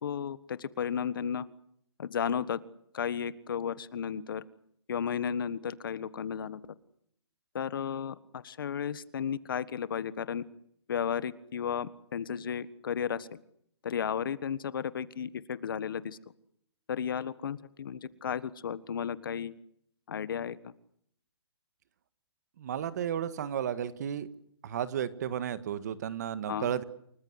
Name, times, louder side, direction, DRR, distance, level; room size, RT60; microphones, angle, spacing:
voice 1, 0.0-1.5 2.0-2.6 2.9-4.4 4.9-6.6 7.5-10.4 10.9-13.4 13.8-16.2 16.9-19.5 20.1-20.7 26.5-26.7, left 8 dB, 50° left, 17 dB, 1.5 m, -34 dB
voice 2, 22.6-24.3 24.6-26.8, right 9 dB, 35° right, 14 dB, 1.7 m, -33 dB
29.5 x 20.0 x 8.1 m, 0.69 s
hypercardioid pair, 170°, 15 cm